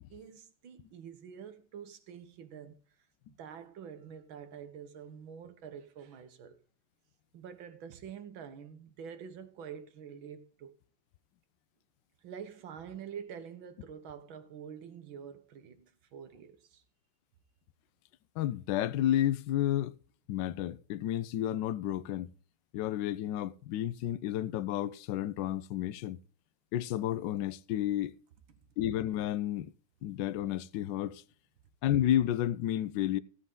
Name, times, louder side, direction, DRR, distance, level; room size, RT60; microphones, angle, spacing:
voice 1, 0.1-2.8 3.4-6.6 7.3-10.7 12.2-16.8 28.5-28.6, right 7 dB, 75° right, 2.0 m, -47 dB
voice 2, 18.4-19.9 20.3-22.3 22.7-26.2 26.7-28.1 28.8-29.7 30.0-31.2 31.8-33.2, left 12 dB, 70° left, 1.2 m, -31 dB
16.0 x 8.2 x 3.8 m
omnidirectional pair, 2.2 m